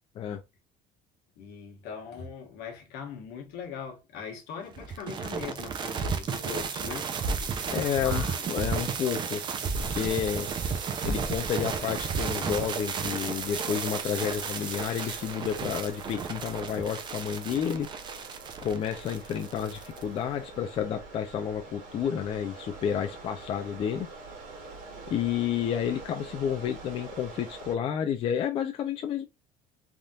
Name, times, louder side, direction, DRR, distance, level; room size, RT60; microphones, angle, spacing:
voice 1, 1.4-7.1 8.0-8.4, left 6 dB, 80° left, 1.2 m, -40 dB
sound 1, 4.7-20.0, right 5 dB, 30° right, 0.5 m, -33 dB
Sawing, 6.7-16.1, right 7 dB, 80° right, 0.9 m, -48 dB
voice 2, 7.7-9.4 9.7-10.5 11.0-17.9 18.6-24.1 25.1-29.2, left 8 dB, 35° left, 0.4 m, -30 dB
sound 2, 9.8-27.8, right 3 dB, 60° right, 1.5 m, -45 dB
3.5 x 2.7 x 2.3 m
cardioid pair, 165°, 16 cm